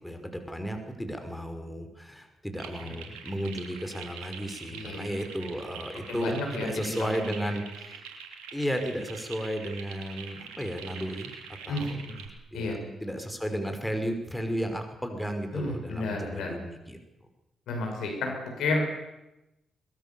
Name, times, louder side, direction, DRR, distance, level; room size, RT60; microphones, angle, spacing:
voice 1, 0.0-8.0 8.5-11.3 11.7-17.0, equal, 5° left, 6 dB, 5.5 m, -34 dB
sound 1, 2.6-12.3, right 7 dB, 80° right, 3.2 m, -44 dB
voice 2, 4.7-5.0 6.1-7.1 7.4-7.5 11.7-12.0 12.5-12.8 15.5-16.5 17.7-18.8, left 2 dB, 70° left, 2 dB, 6.3 m, -31 dB
22.5 x 21.0 x 7.2 m, 0.93 s
hypercardioid pair, 40°, 0 cm